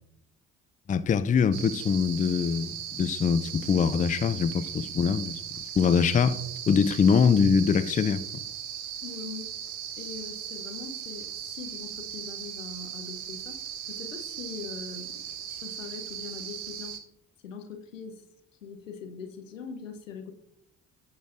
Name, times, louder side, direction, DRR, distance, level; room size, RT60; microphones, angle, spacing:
voice 1, 0.9-5.4 5.8-6.4 6.7-8.4, left 6 dB, 20° left, 0.5 m, -23 dB
Night cricket ambience, 1.5-17.0, right 9 dB, 70° right, 1.0 m, -38 dB
voice 2, 9.0-9.5 10.0-13.6 13.9-17.0 17.4-18.2 18.6-20.3, left 5 dB, 85° left, 0.9 m, -42 dB
15.5 x 6.2 x 2.5 m
figure-of-eight pair, 45°, 37 cm